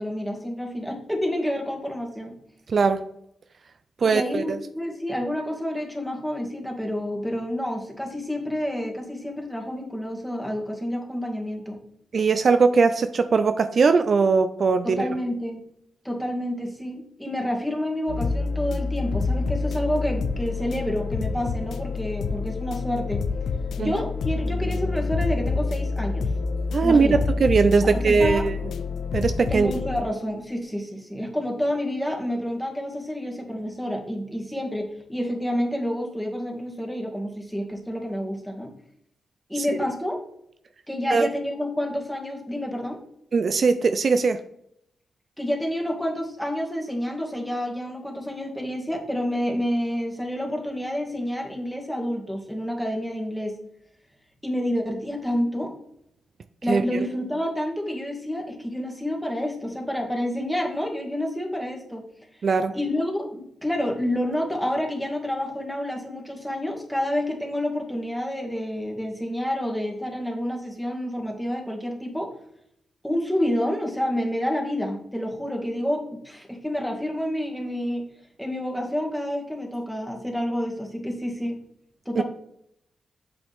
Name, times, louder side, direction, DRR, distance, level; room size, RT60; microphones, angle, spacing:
voice 1, 0.0-2.4 4.0-11.8 14.8-15.6 16.0-23.2 23.8-26.3 26.8-27.2 27.8-28.5 29.5-38.7 39.5-40.2 40.9-43.0 45.4-53.5 54.4-55.7 56.6-62.0 62.7-72.3 73.0-78.0 78.4-81.6 82.1-82.2, equal, ahead, 0 dB, 2.1 m, -29 dB
voice 2, 2.7-3.1 4.0-4.6 12.1-15.1 23.8-23.9 26.7-28.6 29.1-29.7 41.1-41.3 43.3-44.4 56.7-56.8 62.4-62.8 82.2-82.3, right 4 dB, 60° right, 10 dB, 0.5 m, -20 dB
sound 1, 18.1-30.0, left 4 dB, 85° left, 0.6 m, -27 dB
8.4 x 6.1 x 3.6 m, 0.73 s
cardioid pair, 70°, 0 cm